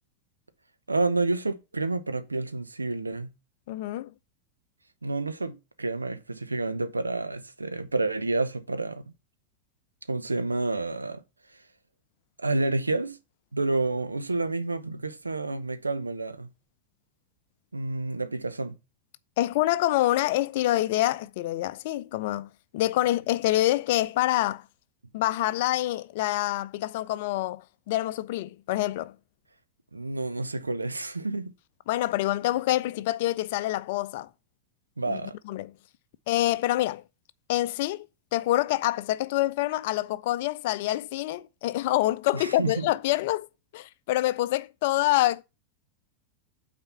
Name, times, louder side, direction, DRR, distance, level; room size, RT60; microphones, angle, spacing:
voice 1, 0.9-3.3 5.0-9.0 10.1-11.2 12.4-13.2 13.5-16.5 17.7-18.8 29.9-31.5 35.0-35.3 42.3-42.9, right 2 dB, 80° right, 0.8 m, -29 dB
voice 2, 3.7-4.1 19.4-24.6 25.1-29.1 31.9-34.3 35.1-35.2 35.5-35.7 36.3-37.0 37.5-38.1 38.3-43.5 43.7-45.4, left 15 dB, 50° left, 0.5 m, -26 dB
8.7 x 4.3 x 5.7 m
figure-of-eight pair, 90°, 0 cm